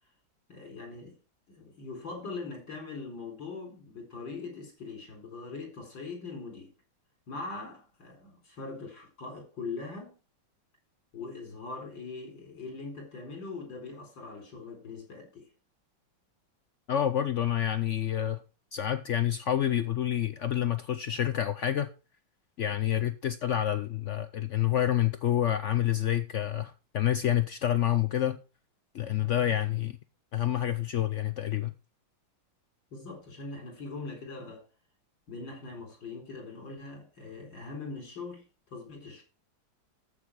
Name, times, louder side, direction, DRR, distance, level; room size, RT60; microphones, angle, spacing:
voice 1, 0.5-1.2 1.5-6.7 7.3-10.2 11.1-15.4 32.9-34.7 35.3-38.4 38.7-39.2, left 3 dB, 70° left, 4.8 m, -41 dB
voice 2, 16.9-18.4 18.7-21.9 22.6-28.4 28.9-30.0 30.3-31.7, left 11 dB, 90° left, 0.6 m, -28 dB
14.0 x 6.6 x 4.8 m
omnidirectional pair, 2.1 m